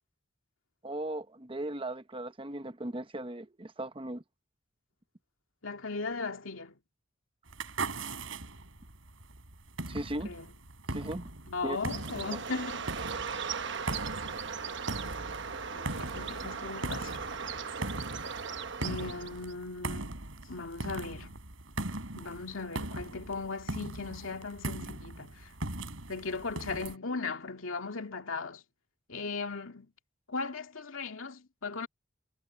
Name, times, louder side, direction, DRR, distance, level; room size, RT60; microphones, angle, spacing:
voice 1, 0.8-4.2 9.9-10.3 10.9-11.3 11.6-11.8, right 1 dB, 25° right, 1.0 m, -37 dB
voice 2, 5.6-6.8 10.2-10.5 11.5-12.8 15.1-17.2 18.8-20.1 20.5-21.4 22.1-25.5 26.1-28.6 29.1-29.9 30.3-31.9, left 4 dB, 80° left, 2.3 m, -38 dB
sound 1, 7.5-27.0, right 2 dB, 80° right, 4.0 m, -40 dB
Bird, 11.8-19.5, right 6 dB, 60° right, 1.2 m, -38 dB
head